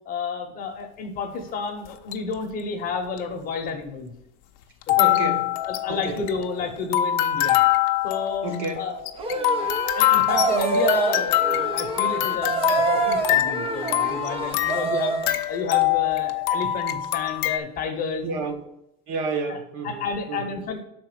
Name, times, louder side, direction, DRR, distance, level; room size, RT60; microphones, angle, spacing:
voice 1, 0.1-4.1 4.9-5.1 5.6-7.6 8.0-8.5 8.7-9.0 9.3-9.7 10.0-18.3 19.5-19.6 19.8-20.8, left 4 dB, 30° left, 0.9 m, -31 dB
sound 1, 1.9-2.3 3.2-3.3 4.8-17.6, left 13 dB, 55° left, 0.6 m, -24 dB
voice 2, 5.0-5.5 5.9-6.2 8.4-8.9 18.2-18.6 19.1-20.0 20.3-20.6, right 3 dB, 40° right, 1.0 m, -30 dB
sound 2, 9.2-15.3, right 3 dB, 20° right, 0.5 m, -26 dB
5.8 x 4.3 x 6.3 m
supercardioid pair, 155°, 30 cm